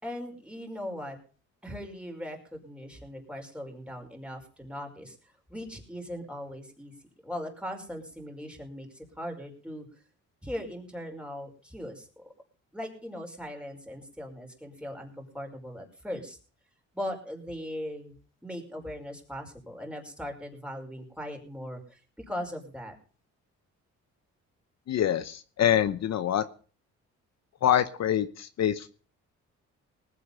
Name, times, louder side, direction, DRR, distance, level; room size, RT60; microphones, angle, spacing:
voice 1, 0.0-1.2 1.6-5.2 5.5-6.9 7.2-9.9 10.4-12.3 12.7-16.4 16.9-18.2 18.4-22.0 22.3-23.0, equal, 5° right, 2 dB, 5.3 m, -39 dB
voice 2, 24.9-26.4 27.6-28.9, left 10 dB, 60° left, 12 dB, 0.9 m, -25 dB
19.5 x 8.4 x 5.5 m, 0.40 s
cardioid pair, 90°, 30 cm